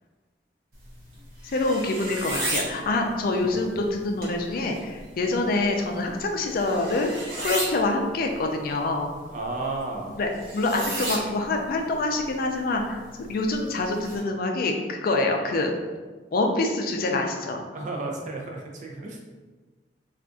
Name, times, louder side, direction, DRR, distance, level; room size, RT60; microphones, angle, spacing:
sound 1, 0.7-14.2, right 1 dB, 60° right, 0.9 m, -36 dB
voice 1, 1.4-7.1 7.4-9.1 10.2-15.7 16.3-17.6, left 2 dB, 55° left, 3 dB, 0.4 m, -26 dB
voice 2, 3.4-3.8 9.2-10.2 17.7-19.2, right 2 dB, 45° right, 0 dB, 0.5 m, -33 dB
2.5 x 2.3 x 3.7 m, 1.4 s
head